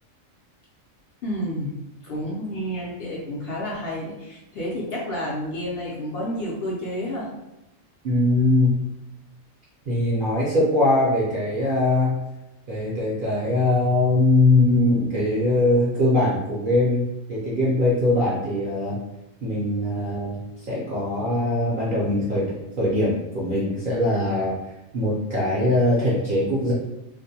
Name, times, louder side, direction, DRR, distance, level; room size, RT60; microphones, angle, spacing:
voice 1, 1.2-1.7 2.0-7.3, equal, 65° left, -5 dB, 0.6 m, -30 dB
voice 2, 8.0-8.8 9.9-12.2 12.7-19.0 19.4-24.6 24.9-26.7, left 2 dB, 55° right, -6 dB, 0.6 m, -21 dB
2.5 x 2.1 x 2.7 m, 0.93 s
omnidirectional pair, 1.4 m